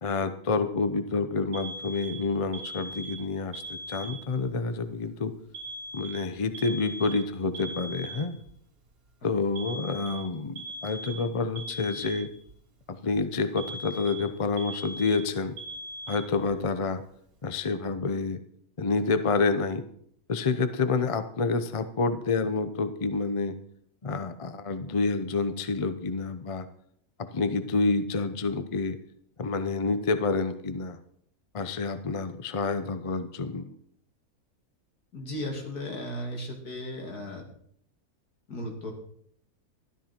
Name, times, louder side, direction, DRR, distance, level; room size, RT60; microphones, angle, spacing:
voice 1, 0.0-5.3 5.9-8.4 9.2-12.3 12.9-15.5 16.1-17.0 17.4-18.4 18.8-19.8 20.3-23.6 24.0-26.7 27.2-29.0 29.4-31.0 31.5-33.7, left 4 dB, 35° left, 11 dB, 0.5 m, -28 dB
Alarm, 1.5-4.5 5.5-8.5 9.6-12.5 13.6-16.5, right 2 dB, 65° right, 2.7 m, -40 dB
voice 2, 35.1-37.4 38.5-38.9, left 1 dB, 75° left, 2 dB, 3.0 m, -35 dB
13.0 x 12.5 x 4.4 m, 0.67 s
omnidirectional pair, 1.6 m